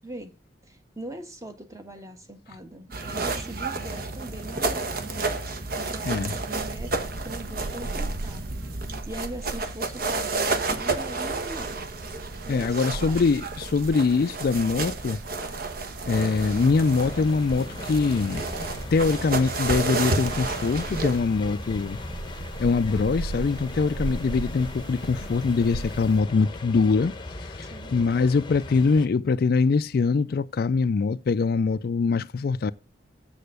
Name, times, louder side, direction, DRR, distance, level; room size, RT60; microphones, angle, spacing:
voice 1, 0.0-0.3 0.6-7.0 7.2-8.6 9.1-11.9 12.4-13.2 27.7-28.0, right 2 dB, 15° right, 1.2 m, -41 dB
sound 1, 2.9-21.2, right 3 dB, 50° right, 1.2 m, -31 dB
sound 2, 6.6-26.2, right 2 dB, 70° right, 0.5 m, -39 dB
voice 2, 12.5-15.2 16.1-18.4 18.9-22.0 22.6-27.1 27.6-32.7, left 4 dB, 55° left, 0.4 m, -23 dB
sound 3, 16.1-29.1, left 2 dB, 25° left, 0.8 m, -38 dB
7.8 x 6.7 x 6.5 m
head